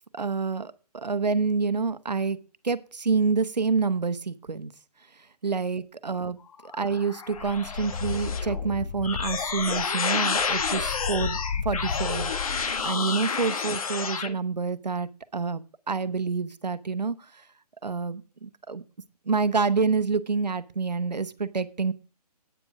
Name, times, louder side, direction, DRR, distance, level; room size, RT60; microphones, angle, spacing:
voice 1, 0.1-2.4 2.6-4.7 5.4-6.4 6.7-11.4 11.6-17.4 17.8-18.8 19.3-21.9, right 4 dB, 90° right, 14 dB, 0.9 m, -28 dB
sound 1, 6.6-14.3, left 5 dB, 60° left, 1.4 m, -29 dB
9.0 x 8.7 x 4.9 m, 0.35 s
figure-of-eight pair, 145°, 21 cm